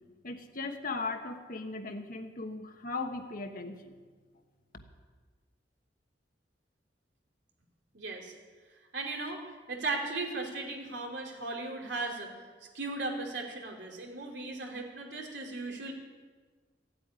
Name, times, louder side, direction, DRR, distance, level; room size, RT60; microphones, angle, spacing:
voice 1, 0.2-3.9, left 3 dB, 50° left, 5 dB, 1.3 m, -38 dB
voice 2, 7.9-8.3 8.9-12.4 12.7-15.9, right 3 dB, 75° right, 1 dB, 2.9 m, -37 dB
15.0 x 8.7 x 9.7 m, 1.4 s
head